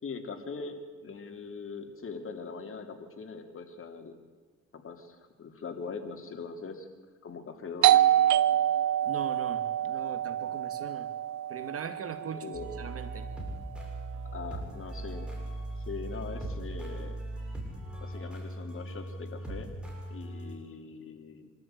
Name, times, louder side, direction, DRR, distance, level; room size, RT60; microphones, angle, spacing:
voice 1, 0.0-4.2 4.7-6.9 7.2-8.0 12.3-12.7 14.3-15.2 15.8-17.2 18.0-19.7 20.1-21.5, left 4 dB, 45° left, 6 dB, 2.8 m, -41 dB
Doorbell, 7.8-13.2, right 12 dB, 70° right, 0.7 m, -26 dB
voice 2, 9.0-11.1 11.5-12.5 12.8-13.3, right 6 dB, 50° right, 9 dB, 2.2 m, -40 dB
sound 1, 12.5-20.6, right 1 dB, 5° right, 7.4 m, -39 dB
25.0 x 13.5 x 9.0 m, 1.5 s
cardioid pair, 90°, 30 cm